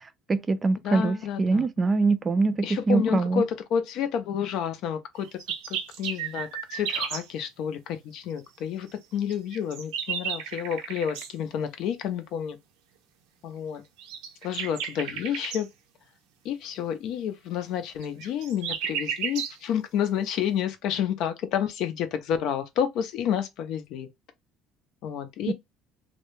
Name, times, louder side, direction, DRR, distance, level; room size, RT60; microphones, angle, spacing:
voice 1, 0.3-3.4 25.5-25.6, right 3 dB, 25° right, 0.3 m, -24 dB
voice 2, 0.8-1.7 2.6-5.4 5.7-12.6 13.4-13.8 14.4-15.7 16.4-24.1 25.0-25.5, left 8 dB, 65° left, 0.5 m, -30 dB
sound 1, 5.2-7.3 9.3-11.3 14.0-15.6 18.0-19.6, right 8 dB, 85° right, 0.6 m, -33 dB
2.2 x 2.1 x 3.0 m
supercardioid pair, 105°, 0 cm